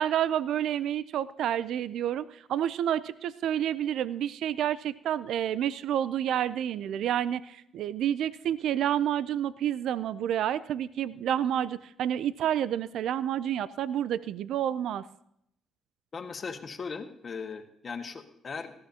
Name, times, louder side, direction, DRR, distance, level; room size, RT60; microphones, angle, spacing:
voice 1, 0.0-15.0, right 10 dB, 75° right, 16 dB, 0.4 m, -29 dB
voice 2, 16.1-18.7, left 5 dB, 45° left, 6 dB, 1.6 m, -38 dB
18.5 x 14.5 x 2.8 m, 0.73 s
cardioid pair, 90°, 0 cm